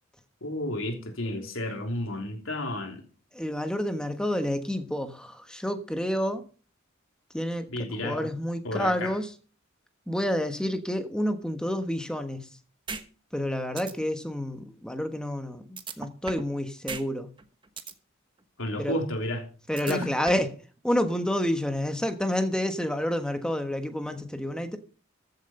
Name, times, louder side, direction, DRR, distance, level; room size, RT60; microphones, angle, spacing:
voice 1, 0.4-3.0 7.7-8.3 8.6-9.1 18.6-19.5 19.8-20.1, left 1 dB, 80° left, 3.3 m, -32 dB
voice 2, 3.3-6.4 7.3-7.7 8.0-9.3 10.1-12.5 13.3-17.3 18.8-19.0 19.7-20.6 20.8-24.8, equal, 5° left, 1.3 m, -29 dB
sound 1, 12.9-13.0 13.4-13.5 13.8-13.9 15.8-16.5 16.9-17.0 17.4-17.9 19.8-20.5, right 4 dB, 25° right, 1.2 m, -36 dB
15.0 x 7.9 x 5.4 m
head